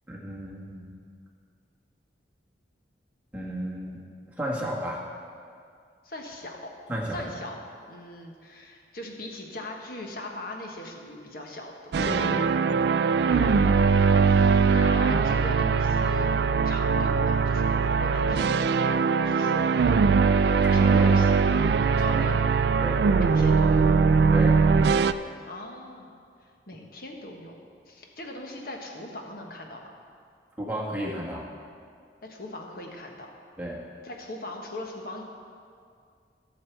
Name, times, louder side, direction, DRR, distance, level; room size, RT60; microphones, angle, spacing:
voice 1, 0.1-0.9 3.3-4.0 4.4-5.0 6.9-7.2 12.0-12.9 13.2-13.3 20.6-21.2 22.0-22.4 22.8-23.1 24.3-24.6 30.6-31.5 33.6-33.8, equal, 10° right, -4 dB, 1.5 m, -33 dB
voice 2, 6.0-6.7 7.1-7.6 7.9-12.4 13.3-19.9 20.6-21.4 22.0-22.4 23.2-24.0 25.5-26.1 26.4-27.5 27.9-29.9 32.2-33.3 34.0-35.2, left 1 dB, 55° left, 1 dB, 1.3 m, -40 dB
sound 1, 11.9-25.1, right 5 dB, 65° right, 0.3 m, -21 dB
16.5 x 6.5 x 4.6 m, 2.3 s
head